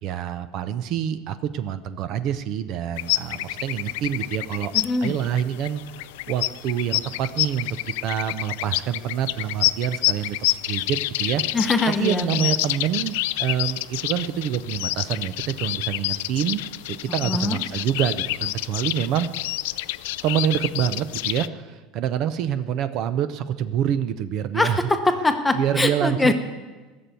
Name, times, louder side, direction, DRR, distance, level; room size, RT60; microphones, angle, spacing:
voice 1, 0.0-4.7 5.0-7.7 8.0-11.4 11.9-16.6 17.0-19.3 20.2-24.8 25.5-26.3, right 10 dB, 45° right, 12 dB, 0.6 m, -26 dB
sound 1, 3.0-21.5, left 17 dB, 85° left, 0.4 m, -28 dB
voice 2, 4.7-5.2 11.5-12.5 17.2-17.6 24.5-26.3, left 2 dB, 10° left, 6 dB, 0.9 m, -22 dB
16.5 x 7.0 x 9.1 m, 1.3 s
cardioid pair, 160°, 0 cm